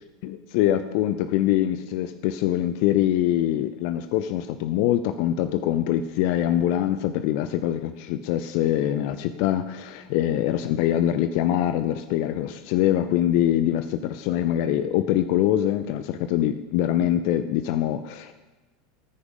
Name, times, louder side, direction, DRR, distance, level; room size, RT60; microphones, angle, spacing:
voice 1, 0.2-18.3, left 12 dB, 55° left, 11 dB, 0.6 m, -24 dB
14.5 x 9.7 x 5.4 m, 1.2 s
figure-of-eight pair, 80°, 0 cm